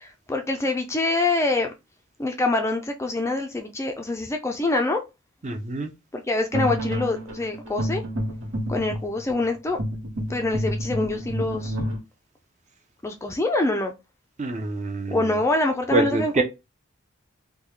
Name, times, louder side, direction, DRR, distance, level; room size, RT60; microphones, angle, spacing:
voice 1, 0.0-1.7 2.2-5.0 6.1-8.0 8.7-9.8 10.3-11.7 13.0-13.9 15.1-16.4, left 2 dB, 15° left, 0.3 m, -25 dB
voice 2, 5.4-5.9 14.4-15.3 15.9-16.4, right 2 dB, 35° right, 0.6 m, -25 dB
sound 1, 6.5-12.0, equal, 80° right, 1.1 m, -29 dB
3.7 x 2.2 x 3.1 m
head